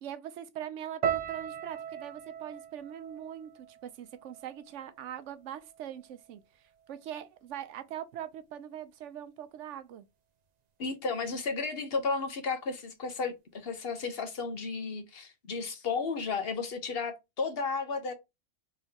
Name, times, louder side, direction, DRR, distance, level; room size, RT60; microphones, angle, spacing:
voice 1, 0.0-6.4 6.9-10.0, right 10 dB, 85° right, 0.9 m, -42 dB
sound 1, 1.0-5.2 5.5-6.3 6.9-7.1, right 8 dB, 55° right, 0.5 m, -39 dB
voice 2, 10.8-18.1, left 4 dB, 60° left, 1.0 m, -33 dB
3.9 x 3.2 x 2.8 m
omnidirectional pair, 1.2 m